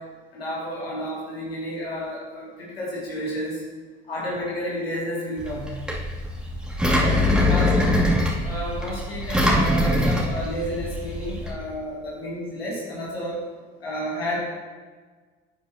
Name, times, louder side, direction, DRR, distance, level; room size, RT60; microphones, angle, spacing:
voice 1, 0.3-3.6 4.1-5.7 6.9-8.0 8.4-13.4 13.8-14.4, equal, 90° left, -6 dB, 2.5 m, -31 dB
Engine, 5.4-11.5, left 1 dB, 5° right, 2.4 m, -23 dB
11.0 x 9.0 x 2.8 m, 1.4 s
hypercardioid pair, 60°, 29 cm